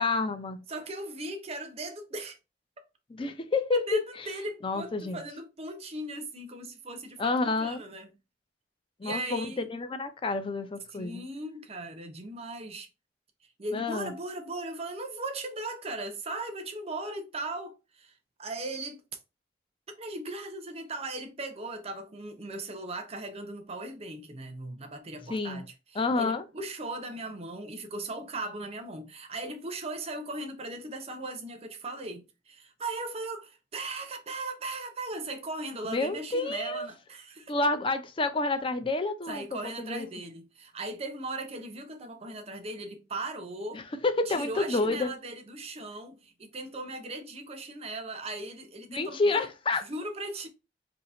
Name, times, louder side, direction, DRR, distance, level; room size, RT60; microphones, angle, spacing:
voice 1, 0.0-0.6 3.1-4.3 4.6-5.2 7.2-7.8 9.0-11.2 13.7-14.1 25.3-25.6 26.0-26.4 35.9-36.9 37.5-39.4 39.8-40.1 43.7-45.1 48.9-49.8, left 3 dB, 30° left, 0.5 m, -29 dB
voice 2, 0.7-2.4 3.7-8.1 9.0-9.7 10.9-12.9 13.6-19.0 20.0-37.5 39.3-43.9 44.3-49.5 49.8-50.5, right 2 dB, 35° right, 0.6 m, -38 dB
2.8 x 2.7 x 4.2 m
head